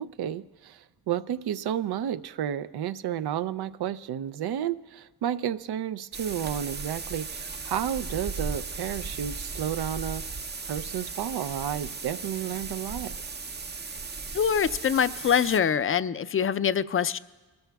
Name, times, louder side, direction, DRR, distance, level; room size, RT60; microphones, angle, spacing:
voice 1, 0.0-10.2 10.6-13.1, right 10 dB, 70° right, 14 dB, 0.5 m, -31 dB
sound 1, 6.1-15.6, right 4 dB, 25° right, 0.6 m, -36 dB
voice 2, 14.3-17.2, left 8 dB, 35° left, 14 dB, 0.5 m, -24 dB
22.5 x 13.0 x 2.3 m, 1.2 s
supercardioid pair, 45°, 40 cm